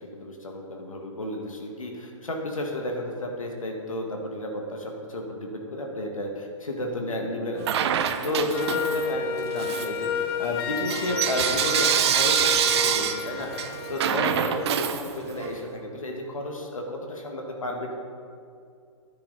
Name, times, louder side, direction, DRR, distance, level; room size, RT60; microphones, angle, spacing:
voice 1, 0.0-7.9 8.2-17.9, left 1 dB, 85° left, 1 dB, 1.8 m, -32 dB
Bell / Coin (dropping), 7.6-9.2 9.6-15.5, right 9 dB, 55° right, 0.7 m, -26 dB
Wind instrument woodwind instrument, 8.5-14.6, left 7 dB, 45° left, 0.7 m, -31 dB
10.0 x 10.0 x 4.1 m, 2.4 s
hypercardioid pair, 125°, 17 cm